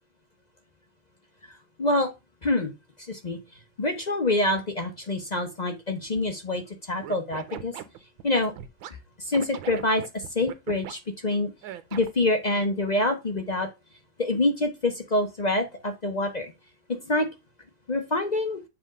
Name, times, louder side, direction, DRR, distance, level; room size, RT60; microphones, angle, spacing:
voice 1, 2.4-2.7 3.1-3.4 3.8-7.7 8.2-8.5 9.2-11.5 11.9-13.7 14.2-16.5 16.9-17.3 17.9-18.6, left 2 dB, 50° left, 5 dB, 0.5 m, -26 dB
Scratching (performance technique), 7.0-8.9 9.3-10.9 11.6-12.3, right 11 dB, 90° right, 1.5 m, -38 dB
7.7 x 3.5 x 4.9 m, 0.24 s
omnidirectional pair, 2.1 m